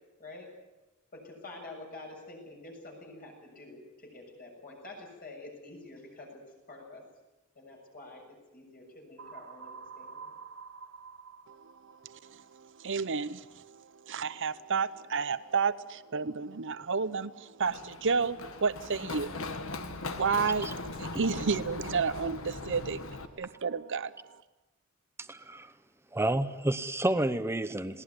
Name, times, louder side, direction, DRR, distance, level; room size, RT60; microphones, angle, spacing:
voice 1, 0.2-0.5 1.1-7.0 7.6-10.3, left 2 dB, 45° left, 0 dB, 7.2 m, -48 dB
sound 1, 9.2-13.0, right 5 dB, 85° right, 2.6 m, -48 dB
voice 2, 12.0-19.3 19.9-23.1 23.4-24.1, right 5 dB, 60° right, 15 dB, 0.8 m, -31 dB
Run, 17.6-23.3, left 3 dB, 65° left, 1.6 m, -39 dB
voice 3, 25.3-25.7 26.1-28.0, right 1 dB, 10° right, 11 dB, 0.9 m, -30 dB
20.5 x 18.0 x 9.8 m, 1.1 s
head